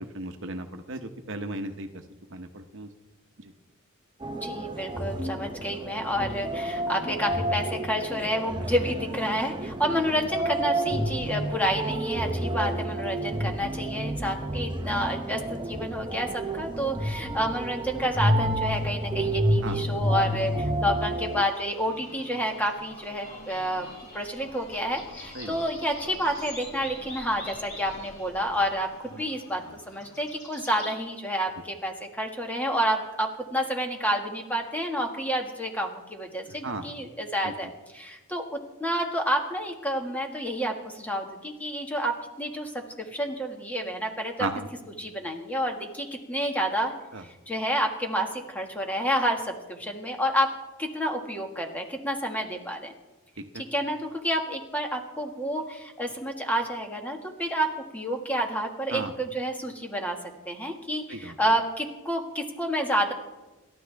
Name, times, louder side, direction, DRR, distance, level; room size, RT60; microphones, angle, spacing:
voice 1, 0.1-1.9 2.3-2.9 3.4-3.5 19.6-19.8 25.3-25.6 36.6-36.9 37.4-37.5 44.4-44.7 47.1-47.2 53.5-53.6 58.9-59.1 61.1-61.3, right 2 dB, 60° right, 7 dB, 1.0 m, -35 dB
sound 1, 4.2-21.4, right 1 dB, 20° right, 0.8 m, -30 dB
voice 2, 4.4-23.9 24.1-42.7 43.0-44.5 45.0-52.9 53.5-60.2 60.5-63.1, equal, 10° left, 2 dB, 1.7 m, -29 dB
sound 2, 21.3-31.0, left 1 dB, 35° left, 6.0 m, -45 dB
28.0 x 13.0 x 3.5 m, 1.1 s
head